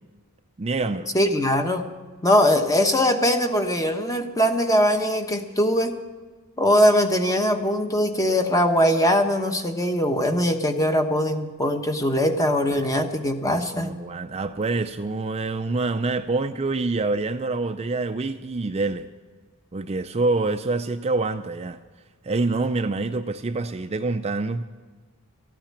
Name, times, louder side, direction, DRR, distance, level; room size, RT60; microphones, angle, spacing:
voice 1, 0.6-1.1 12.7-13.0 13.4-19.1 19.7-21.8 22.2-24.6, right 3 dB, 30° right, 8 dB, 0.4 m, -26 dB
voice 2, 1.1-1.9 2.2-5.9 6.6-13.9, equal, 15° left, 6 dB, 1.1 m, -21 dB
14.0 x 8.9 x 8.6 m, 1.4 s
head